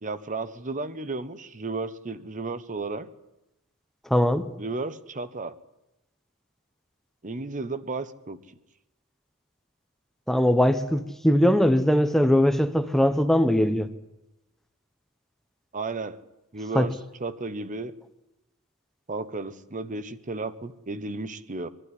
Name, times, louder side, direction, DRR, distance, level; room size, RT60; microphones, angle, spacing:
voice 1, 0.0-3.1 4.6-5.5 7.2-8.6 15.7-16.2 16.5-16.9 17.2-17.9 19.1-21.7, right 3 dB, 35° right, 12 dB, 0.9 m, -33 dB
voice 2, 4.1-4.5 10.3-13.9 16.7-16.9, equal, ahead, 9 dB, 0.7 m, -21 dB
22.0 x 12.5 x 9.9 m, 0.96 s
head